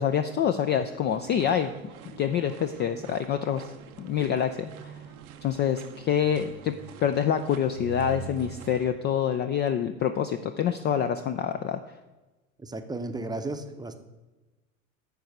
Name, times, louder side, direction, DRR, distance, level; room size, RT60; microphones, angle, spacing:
voice 1, 0.0-1.7 2.2-3.7 4.0-4.9 5.4-11.8, left 8 dB, 25° left, 9 dB, 0.4 m, -26 dB
sound 1, 1.1-8.9, right 5 dB, 80° right, 0.8 m, -44 dB
voice 2, 12.6-14.0, right 2 dB, 10° right, 7 dB, 0.7 m, -34 dB
9.3 x 4.7 x 6.5 m, 1.1 s
hypercardioid pair, 80°, 43 cm